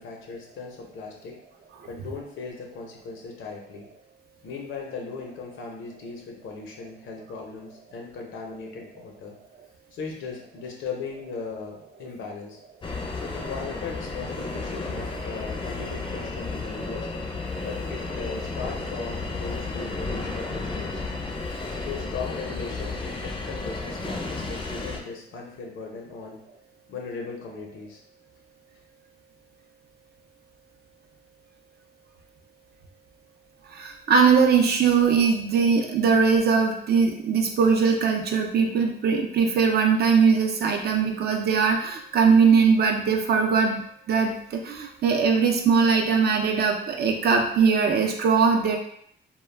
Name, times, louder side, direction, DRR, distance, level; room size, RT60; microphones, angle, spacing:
voice 1, 0.0-1.3 1.9-3.9 4.4-9.4 9.9-12.6 13.1-17.1 17.6-21.0 21.8-26.4 26.9-28.0, left 4 dB, 75° left, 0 dB, 0.7 m, -38 dB
sound 1, 12.8-25.0, left 3 dB, 25° left, 0.5 m, -33 dB
voice 2, 33.7-48.8, right 5 dB, 55° right, 3 dB, 0.5 m, -21 dB
2.2 x 2.2 x 3.3 m, 0.66 s
cardioid pair, 90°, 20 cm